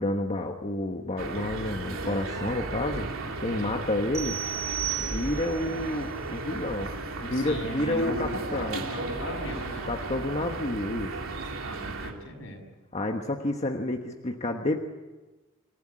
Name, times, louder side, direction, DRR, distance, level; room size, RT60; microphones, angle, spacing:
voice 1, 0.0-3.1 3.4-4.4 5.0-8.8 9.8-11.1 12.9-14.8, left 1 dB, 35° left, 3 dB, 1.2 m, -30 dB
sound 1, 1.2-12.1, right 3 dB, 80° right, 3.0 m, -35 dB
sound 2, 4.1-5.7, right 11 dB, 15° right, 2.8 m, -33 dB
voice 2, 7.3-9.9 11.6-12.7, equal, 70° left, 2 dB, 6.5 m, -37 dB
26.5 x 15.0 x 10.0 m, 1.2 s
head